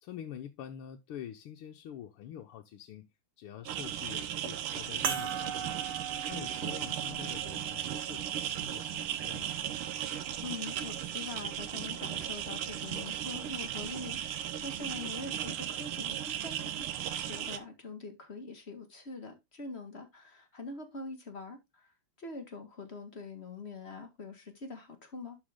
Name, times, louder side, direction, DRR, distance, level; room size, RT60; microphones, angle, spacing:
voice 1, 0.0-3.0 3.4-5.7 6.3-9.5, left 10 dB, 85° left, 1.8 m, -46 dB
sound 1, 3.7-17.6, right 10 dB, 80° right, 1.8 m, -36 dB
sound 2, 5.0-9.8 10.6-10.7 12.9-13.0, right 8 dB, 60° right, 0.8 m, -40 dB
voice 2, 10.4-16.9 17.2-21.9 22.2-25.4, left 3 dB, 30° left, 1.9 m, -44 dB
11.5 x 4.7 x 3.7 m
omnidirectional pair, 2.4 m